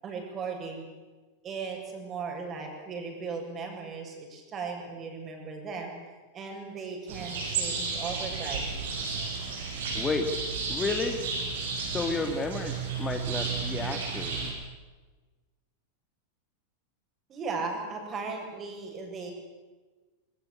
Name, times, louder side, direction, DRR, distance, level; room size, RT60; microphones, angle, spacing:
voice 1, 0.0-0.8 1.4-6.0 6.3-8.8 17.3-19.3, right 4 dB, 25° right, 3 dB, 7.8 m, -37 dB
sound 1, 7.1-14.5, right 4 dB, 60° right, 7.3 m, -33 dB
voice 2, 9.9-10.3 10.7-11.2 11.9-14.4, left 4 dB, 20° left, 6 dB, 2.3 m, -31 dB
24.5 x 24.0 x 8.5 m, 1.3 s
figure-of-eight pair, 90°, 0 cm